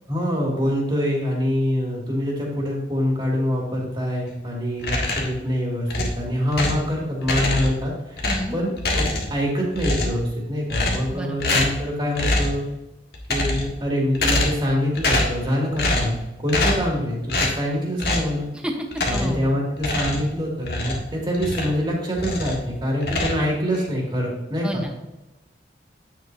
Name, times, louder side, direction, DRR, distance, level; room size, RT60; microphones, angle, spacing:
voice 1, 0.1-12.6 13.3-18.5 19.1-24.8, equal, 25° right, -2 dB, 2.4 m, -25 dB
sound 1, 4.8-5.4 5.9-6.9 7.2-7.9 8.2-9.5 9.7-10.3 10.7-11.1 11.4-11.8 12.2-12.6 13.1-13.8 14.1-14.7 15.0-15.4 15.8-16.2 16.5-16.9 17.3-17.6 18.0-18.3 18.9-19.4 19.8-21.8 22.1-22.7 23.0-23.9, left 2 dB, 65° left, 1.7 m, -24 dB
voice 2, 8.2-8.6 11.1-11.5 18.6-18.7 19.1-19.4 24.6-25.2, equal, 5° right, 2 dB, 1.0 m, -30 dB
9.4 x 7.6 x 2.7 m, 1.0 s
head